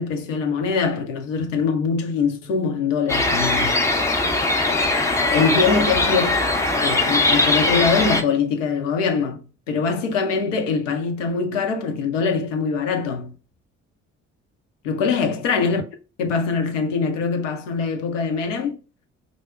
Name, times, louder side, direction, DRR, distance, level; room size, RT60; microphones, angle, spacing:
voice 1, 0.0-3.8 5.3-6.4 6.8-9.4 9.7-13.3 14.8-15.8 16.2-18.8, left 5 dB, 75° left, 0.6 m, -23 dB
sound 1, 3.1-8.2, left 2 dB, 10° left, 0.5 m, -20 dB
4.9 x 2.0 x 2.3 m
figure-of-eight pair, 45°, 38 cm